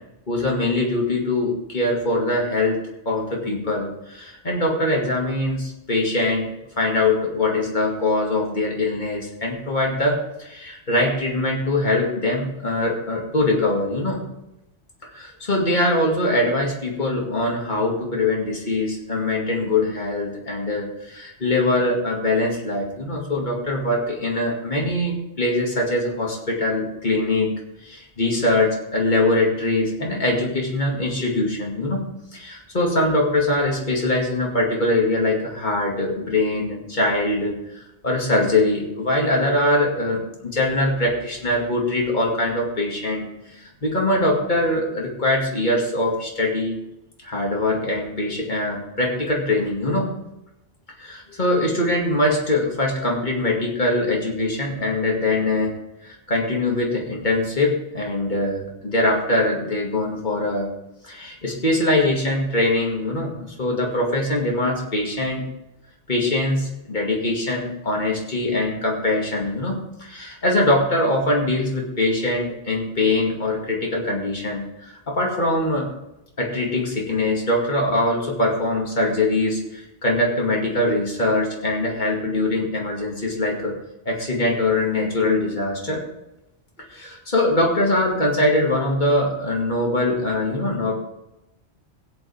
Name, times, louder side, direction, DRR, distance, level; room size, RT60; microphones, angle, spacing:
voice 1, 0.3-2.8 3.1-6.4 6.8-14.2 15.1-27.5 27.8-32.1 32.3-37.5 38.0-43.2 43.5-46.8 47.2-50.1 51.0-55.7 56.0-60.7 61.0-63.3 63.6-65.4 66.1-75.9 76.4-83.7 84.1-86.0 86.9-90.9, left 2 dB, 45° left, -1 dB, 2.5 m, -22 dB
16.0 x 8.6 x 3.5 m, 0.90 s
omnidirectional pair, 1.1 m